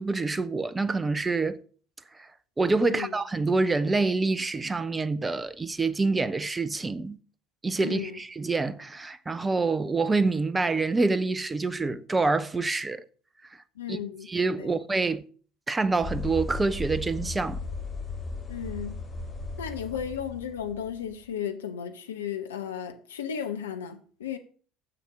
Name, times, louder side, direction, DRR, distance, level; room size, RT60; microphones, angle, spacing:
voice 1, 0.0-1.6 2.2-2.3 2.6-7.2 7.6-13.0 13.9-14.0 14.3-15.2 15.7-17.6, right 3 dB, 15° right, 0.6 m, -26 dB
voice 2, 2.8-3.1 7.8-8.2 13.8-14.3 14.6-14.8 18.5-18.9 19.6-24.4, left 8 dB, 75° left, 0.9 m, -34 dB
sound 1, 16.0-21.3, left 3 dB, 20° left, 2.7 m, -36 dB
9.9 x 7.0 x 6.2 m
figure-of-eight pair, 65°, 0 cm